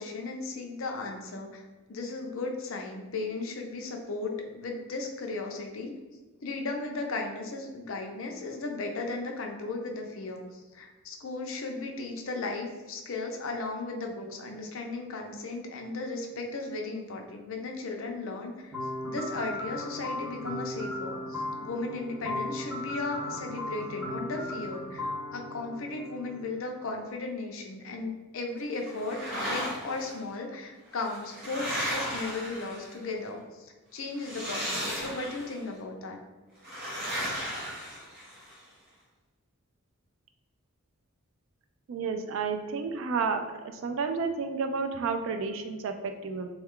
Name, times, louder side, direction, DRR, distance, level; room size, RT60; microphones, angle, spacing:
voice 1, 0.0-1.6 1.9-5.9 6.4-18.7 19.1-36.2, left 3 dB, 65° left, 2 dB, 0.5 m, -36 dB
sound 1, 18.7-26.6, left 1 dB, ahead, 0.6 m, -36 dB
sound 2, 28.9-30.1 30.9-33.1 34.2-35.6 36.6-38.5, equal, 45° right, 0.8 m, -35 dB
voice 2, 41.9-46.5, right 5 dB, 60° right, 6 dB, 0.3 m, -31 dB
3.2 x 2.3 x 3.6 m, 1.2 s
head